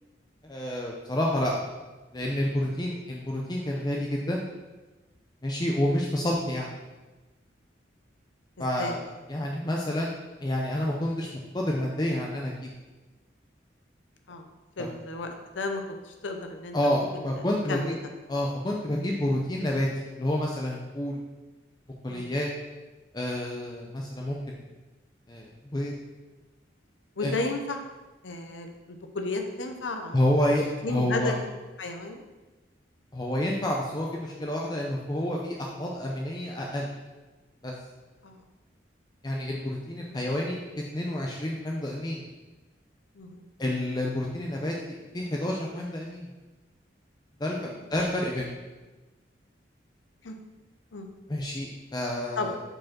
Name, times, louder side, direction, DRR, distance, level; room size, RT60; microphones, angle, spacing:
voice 1, 0.4-1.5 2.1-4.5 5.4-6.7 8.6-9.0 9.3-10.1 10.4-11.3 11.5-12.7 14.8-14.9 16.7-17.9 18.3-19.9 20.2-21.2 22.0-22.5 23.1-24.6 25.3-25.9 27.2-27.4 30.1-31.3 33.1-36.9 37.6-37.7 39.2-40.6 40.9-42.3 43.6-46.3 47.4-47.6 47.9-48.5 51.3-52.6, left 1 dB, 20° left, -2 dB, 0.6 m, -29 dB
voice 2, 14.8-16.7 17.1-18.0 22.1-22.3 27.2-27.8 28.2-30.2 30.8-31.5 31.8-32.2 38.2-38.4 40.1-40.2 43.2-43.4 47.5-47.7 50.2-50.4 50.9-51.1 52.4-52.5, left 2 dB, 85° left, 5 dB, 0.7 m, -33 dB
5.0 x 4.9 x 5.9 m, 1.2 s
head